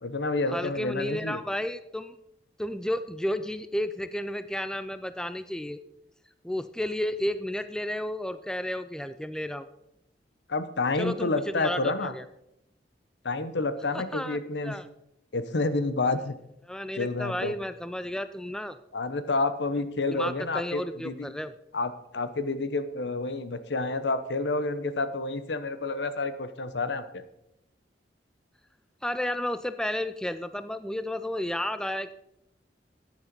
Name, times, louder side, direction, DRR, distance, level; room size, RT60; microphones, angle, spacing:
voice 1, 0.0-1.4 10.5-12.1 13.2-14.8 15.3-16.4 17.0-17.5 18.9-21.3 21.7-27.2, left 3 dB, 70° left, 12 dB, 0.9 m, -29 dB
voice 2, 0.5-2.1 2.6-5.8 6.4-9.7 11.0-12.2 13.9-14.4 14.6-14.8 16.7-18.8 20.1-21.5 29.0-32.1, left 1 dB, 5° left, 12 dB, 0.4 m, -32 dB
9.8 x 9.7 x 5.2 m, 0.81 s
head